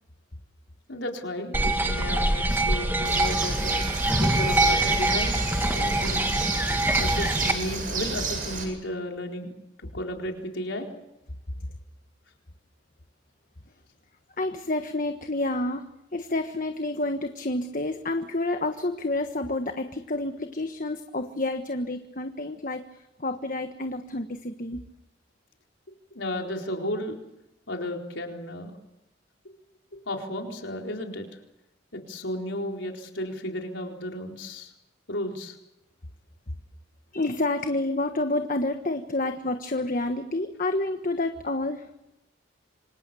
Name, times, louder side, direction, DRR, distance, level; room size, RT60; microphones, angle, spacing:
voice 1, 0.9-3.7 4.2-5.4 5.6-6.3 7.0-9.5 9.8-10.9 26.1-27.2 27.7-28.7 30.1-31.3 31.9-34.7 35.1-35.6, left 1 dB, 75° left, 2 dB, 4.4 m, -33 dB
sound 1, 1.5-7.5, right 1 dB, 10° right, 1.9 m, -24 dB
Bird, 3.0-8.6, right 3 dB, 45° right, 7.6 m, -31 dB
voice 2, 14.4-15.8 16.1-22.9 23.2-24.8 37.1-41.9, left 2 dB, 45° left, 6 dB, 1.4 m, -29 dB
27.0 x 25.5 x 7.0 m, 0.89 s
head